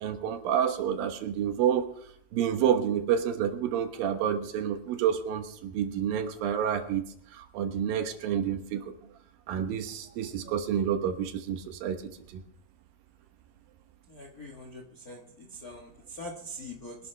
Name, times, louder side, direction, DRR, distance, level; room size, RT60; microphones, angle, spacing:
voice 1, 0.0-1.9 2.3-7.0 7.3-8.9 9.5-12.0 12.3-12.4, right 9 dB, 70° right, 7 dB, 2.8 m, -29 dB
voice 2, 14.1-15.2 15.6-16.9, left 1 dB, 70° left, 3 dB, 0.8 m, -43 dB
24.0 x 11.5 x 3.4 m, 0.70 s
omnidirectional pair, 4.4 m